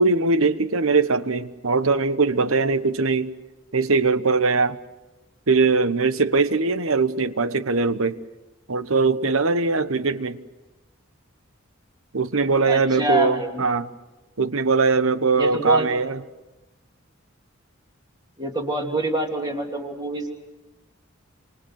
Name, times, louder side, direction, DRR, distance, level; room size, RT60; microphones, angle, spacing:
voice 1, 0.0-3.3 3.7-4.8 5.5-8.2 8.7-10.4 12.1-13.9 14.4-16.2, right 4 dB, 85° right, 1.1 m, -21 dB
voice 2, 12.7-13.6 15.4-15.9 18.4-20.3, right 1 dB, 20° right, 3.0 m, -26 dB
27.0 x 27.0 x 6.5 m
head